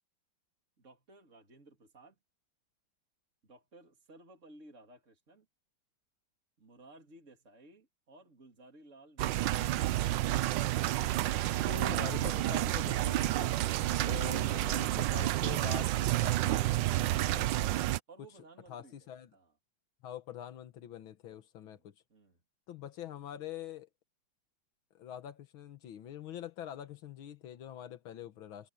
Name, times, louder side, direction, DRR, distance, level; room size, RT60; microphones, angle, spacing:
voice 1, 0.8-2.2 3.4-5.5 6.6-9.5 18.1-19.5 21.6-22.4, right 2 dB, 35° right, 3.5 m, -57 dB
sound 1, 9.2-18.0, right 15 dB, 70° right, 1.2 m, -30 dB
voice 2, 11.6-13.6 14.1-17.5 18.7-19.3 20.0-21.9 22.7-23.9 24.9-28.7, left 11 dB, 90° left, 1.9 m, -45 dB
omnidirectional pair, 2.2 m